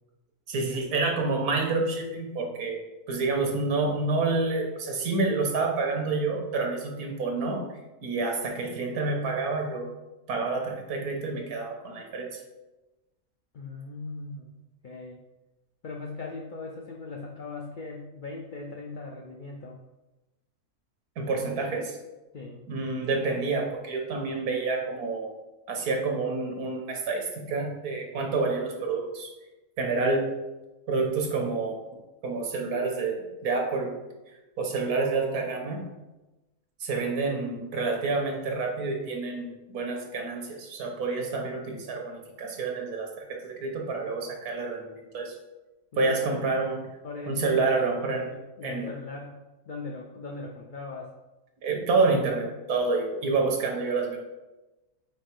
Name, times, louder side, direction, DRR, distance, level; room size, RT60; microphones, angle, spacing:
voice 1, 0.5-2.8 3.1-7.6 8.0-9.9 10.3-12.4 21.2-22.0 22.7-25.3 25.7-29.3 29.8-30.3 30.9-31.8 32.2-33.9 34.6-35.8 36.8-45.3 46.0-46.8 47.3-48.3 48.6-48.9 51.6-54.2, right 3 dB, 80° right, 1 dB, 1.6 m, -28 dB
voice 2, 13.5-14.5 14.8-15.2 15.8-19.8 22.3-22.6 45.9-46.4 47.0-48.0 48.3-49.4 49.7-51.1, left 3 dB, 75° left, 0 dB, 0.4 m, -39 dB
4.6 x 4.5 x 4.6 m, 1.1 s
omnidirectional pair, 1.6 m